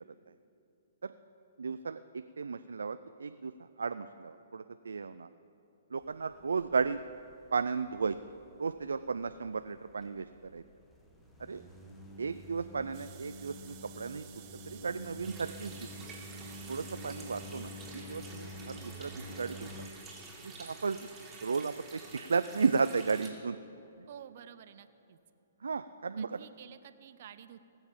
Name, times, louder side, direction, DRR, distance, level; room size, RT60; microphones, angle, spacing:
voice 1, 1.6-5.3 5.9-7.0 7.5-8.2 8.6-10.6 11.4-11.6 12.2-14.3 14.7-16.1 16.7-19.7 20.4-21.1 21.4-23.6 25.6-26.4, right 5 dB, 85° right, 11 dB, 0.4 m, -34 dB
sound 1, 6.0-19.9, equal, 10° left, 1.3 m, -49 dB
sound 2, 12.9-17.9, right 11 dB, 35° right, 1.0 m, -55 dB
Water tap faucet, 15.2-23.3, right 3 dB, 10° right, 2.5 m, -49 dB
voice 2, 24.1-25.2 26.2-27.6, right 9 dB, 55° right, 12 dB, 0.7 m, -51 dB
19.0 x 7.2 x 7.2 m, 2.9 s
hypercardioid pair, 140°, 0 cm